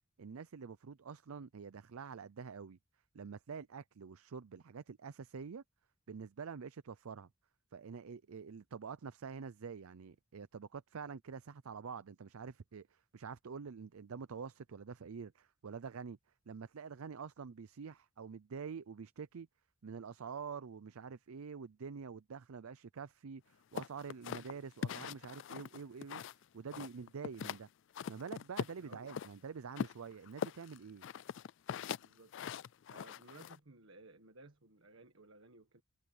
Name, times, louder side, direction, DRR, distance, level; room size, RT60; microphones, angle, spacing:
voice 1, 0.2-2.8 3.1-5.6 6.1-7.3 7.7-16.2 16.5-19.5 19.8-26.2 26.5-27.7 28.1-31.0, right 5 dB, 85° right, 0.5 m, -47 dB
sound 1, 23.8-26.4 26.7-27.6 27.9-29.3 29.8-33.6, left 7 dB, 60° left, 0.3 m, -42 dB
voice 2, 28.8-29.1 32.0-32.3 32.9-35.8, right 2 dB, 65° right, 1.7 m, -58 dB
head